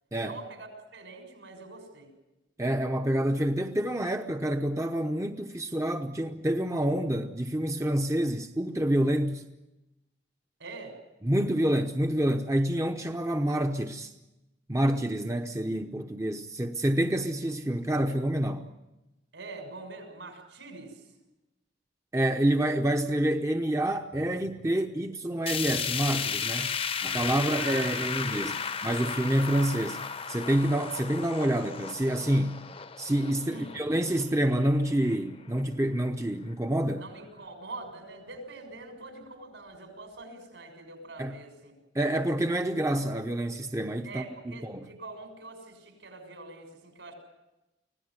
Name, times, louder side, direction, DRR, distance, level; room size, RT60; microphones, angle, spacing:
voice 1, 0.2-2.1 10.6-10.9 19.3-21.1 27.5-28.6 33.5-33.7 37.0-41.7 44.0-47.1, right 3 dB, 75° right, 6.7 m, -44 dB
voice 2, 2.6-9.4 11.2-14.1 14.7-18.6 22.1-26.7 27.0-30.0 30.3-32.6 33.0-37.0 41.2-41.4 41.9-44.9, right 1 dB, 15° right, 0.8 m, -28 dB
sound 1, 25.5-35.6 36.0-36.1 36.5-36.6 37.4-37.5, left 6 dB, 30° left, 0.8 m, -35 dB
25.0 x 17.0 x 9.6 m
head